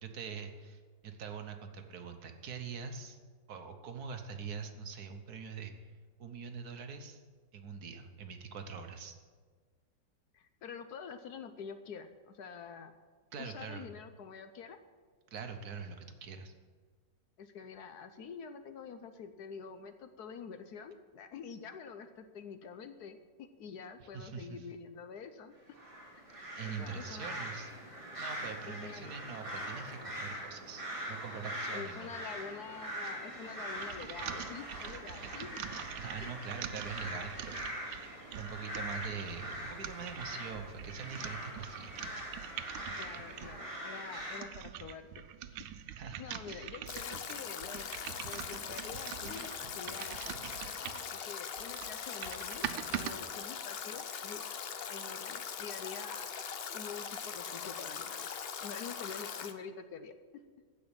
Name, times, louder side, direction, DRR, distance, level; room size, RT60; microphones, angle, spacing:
voice 1, 0.0-3.2 3.5-5.9 6.2-7.2 7.5-9.2 13.3-13.9 15.3-16.5 24.0-24.7 26.6-27.7 28.2-32.3 33.0-33.2 36.0-42.1 46.0-46.7, right 6 dB, 60° right, 6 dB, 1.4 m, -44 dB
voice 2, 10.3-12.9 13.4-14.8 17.4-25.5 26.1-26.2 26.6-27.5 28.6-29.1 31.7-35.6 36.2-36.4 43.0-45.6 46.2-47.9 48.2-50.3 51.1-52.7 52.9-56.2 56.7-58.3 58.6-60.1, left 6 dB, 65° left, 9 dB, 1.1 m, -47 dB
sound 1, 25.7-44.4, equal, 15° right, 2.3 m, -42 dB
sound 2, 33.8-43.6 44.2-51.1 51.6-53.2, right 10 dB, 85° right, 1.4 m, -44 dB
Stream / Drip / Trickle dribble, 46.9-59.5, left 7 dB, 85° left, 0.5 m, -41 dB
15.0 x 5.2 x 8.8 m, 1.5 s
omnidirectional pair, 2.0 m